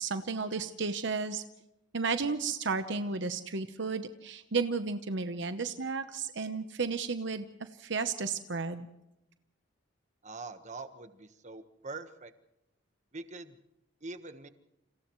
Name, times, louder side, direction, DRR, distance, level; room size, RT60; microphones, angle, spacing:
voice 1, 0.0-1.4 1.9-8.9, right 4 dB, 65° right, 9 dB, 1.0 m, -33 dB
voice 2, 10.2-12.3 13.1-13.6 14.0-14.5, right 3 dB, 40° right, 9 dB, 1.4 m, -44 dB
29.5 x 28.0 x 3.2 m, 0.87 s
head